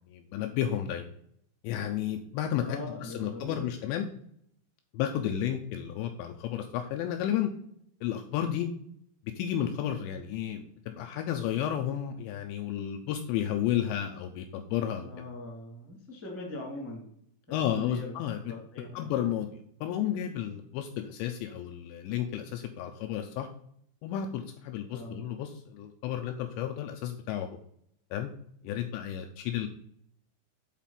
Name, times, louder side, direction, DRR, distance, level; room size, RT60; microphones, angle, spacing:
voice 1, 0.1-1.1 1.6-4.1 4.9-7.5 8.0-8.7 9.4-10.7 11.0-15.1 17.5-18.4 18.9-23.5 24.0-27.5 28.1-28.3 28.6-29.7, left 10 dB, 80° left, 4 dB, 2.6 m, -32 dB
voice 2, 2.6-3.7 15.0-17.1 17.5-18.1 18.4-19.1 24.9-25.2, left 2 dB, 5° right, -3 dB, 1.2 m, -41 dB
8.9 x 4.1 x 5.8 m, 0.69 s
omnidirectional pair, 5.6 m